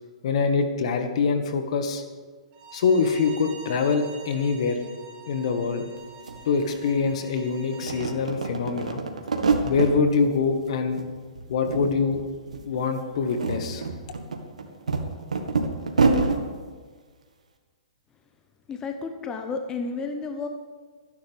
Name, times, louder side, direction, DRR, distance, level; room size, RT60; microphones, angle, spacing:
voice 1, 0.2-2.0 2.7-4.8 5.3-5.8 6.5-9.0 9.6-11.0 11.5-12.2 12.7-13.8, left 5 dB, 60° left, 6 dB, 1.8 m, -24 dB
Bowed string instrument, 2.5-8.1, right 5 dB, 35° right, 3.0 m, -46 dB
sound 1, 6.0-6.1 6.3-7.4 7.7-9.9 10.3-11.1 11.3-12.2 12.5-12.6 13.1-16.4, right 4 dB, 90° right, 1.8 m, -26 dB
voice 2, 18.7-20.5, left 4 dB, 20° left, 5 dB, 1.0 m, -31 dB
25.0 x 10.5 x 3.6 m, 1.5 s
hypercardioid pair, 130°, 4 cm